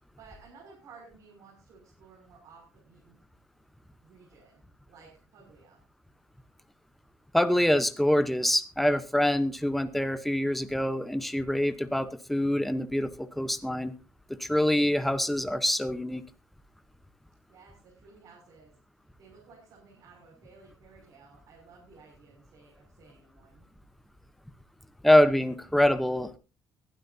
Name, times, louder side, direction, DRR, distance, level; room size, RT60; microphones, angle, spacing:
voice 1, 0.2-3.2 4.0-4.6 4.9-5.8 17.5-18.7 19.2-23.7, right 4 dB, 55° right, -3 dB, 6.4 m, -55 dB
voice 2, 7.3-13.9 14.3-16.2 25.0-26.4, left 1 dB, ahead, 10 dB, 0.9 m, -25 dB
21.5 x 12.0 x 2.7 m, 0.30 s
cardioid pair, 165°, 7 cm